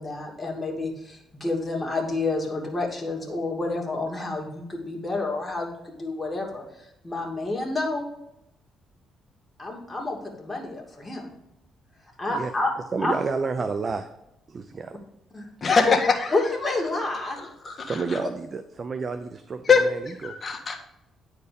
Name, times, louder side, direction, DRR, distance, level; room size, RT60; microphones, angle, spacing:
voice 1, 0.0-8.1 9.6-11.2 12.2-12.7 13.0-13.1 15.3-15.5 15.8-15.9 16.3-17.4, left 2 dB, 15° left, -1 dB, 2.5 m, -29 dB
voice 2, 12.9-14.1 14.5-15.0 17.8-20.3, right 4 dB, 40° right, 9 dB, 0.6 m, -30 dB
voice 3, 15.6-16.3 17.4-18.2 19.6-19.8 20.2-20.8, left 5 dB, 35° left, 3 dB, 1.5 m, -22 dB
9.8 x 4.6 x 5.1 m, 0.87 s
cardioid pair, 90°, 0 cm